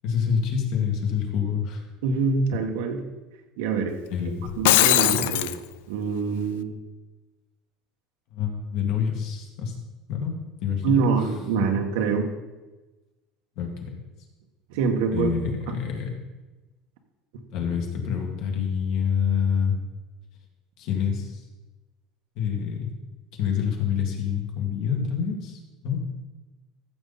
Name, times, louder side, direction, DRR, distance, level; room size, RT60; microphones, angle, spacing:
voice 1, 0.0-1.8 4.1-4.5 5.1-5.2 8.3-9.7 10.1-10.3 10.6-11.0 13.6-13.9 15.1-16.1 17.5-19.8 20.8-21.4 22.4-22.9 23.3-26.0, left 7 dB, 55° left, 1 dB, 2.1 m, -27 dB
voice 2, 2.0-3.0 3.6-3.9 4.6-5.5 5.9-6.7 10.8-12.3 14.7-15.3 15.7-15.8, right 5 dB, 80° right, 3 dB, 1.7 m, -25 dB
Shatter, 4.5-5.6, left 16 dB, 85° left, 0.4 m, -19 dB
14.0 x 7.3 x 4.2 m, 1.1 s
cardioid pair, 165°, 0 cm